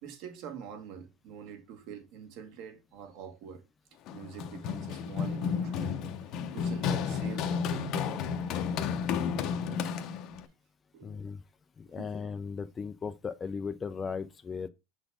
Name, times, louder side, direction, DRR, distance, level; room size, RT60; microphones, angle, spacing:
voice 1, 0.0-3.6 4.1-8.0 9.5-9.6 9.9-10.2 10.9-11.3 11.9-12.1, right 7 dB, 50° right, 1.5 m, -45 dB
Run, 4.1-10.4, left 6 dB, 40° left, 0.7 m, -32 dB
voice 2, 11.0-11.4 11.8-14.7, left 5 dB, 15° left, 0.4 m, -37 dB
7.0 x 4.1 x 3.4 m
supercardioid pair, 165°, 0 cm